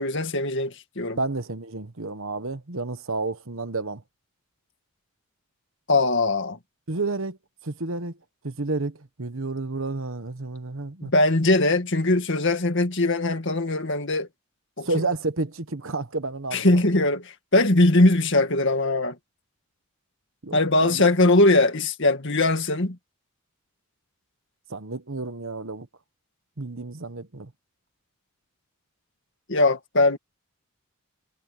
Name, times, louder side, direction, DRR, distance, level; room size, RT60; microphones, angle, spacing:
voice 1, 0.0-1.2 5.9-6.6 11.0-14.3 14.8-14.9 16.5-19.2 20.5-23.0 29.5-30.2, left 2 dB, 55° left, 2.1 m, -21 dB
voice 2, 1.2-4.0 6.9-7.4 7.6-8.1 8.4-11.1 14.8-16.7 20.4-21.0 24.7-25.9 26.6-27.5, right 3 dB, 60° right, 1.3 m, -30 dB
head